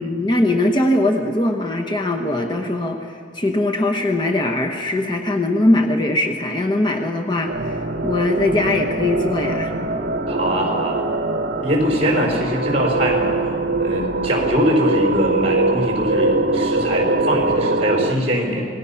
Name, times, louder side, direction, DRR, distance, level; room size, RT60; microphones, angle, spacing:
voice 1, 0.0-9.7, left 1 dB, 25° left, 2 dB, 1.1 m, -21 dB
sound 1, 7.5-18.2, right 2 dB, 65° right, 1.0 m, -22 dB
voice 2, 10.3-11.0 11.6-13.3 13.8-18.7, equal, 35° right, 1 dB, 4.8 m, -22 dB
26.5 x 19.5 x 5.8 m, 2.3 s
head